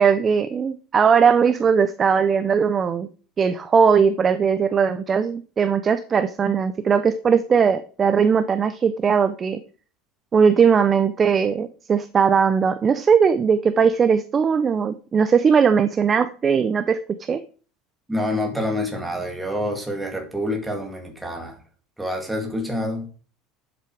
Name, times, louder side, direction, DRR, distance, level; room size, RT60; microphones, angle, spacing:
voice 1, 0.0-3.1 3.4-9.6 10.3-17.4, right 6 dB, 20° right, 11 dB, 0.5 m, -19 dB
voice 2, 18.1-21.6 22.0-23.1, left 1 dB, 5° right, 2 dB, 2.0 m, -27 dB
10.5 x 7.7 x 4.7 m, 0.41 s
cardioid pair, 165°, 0 cm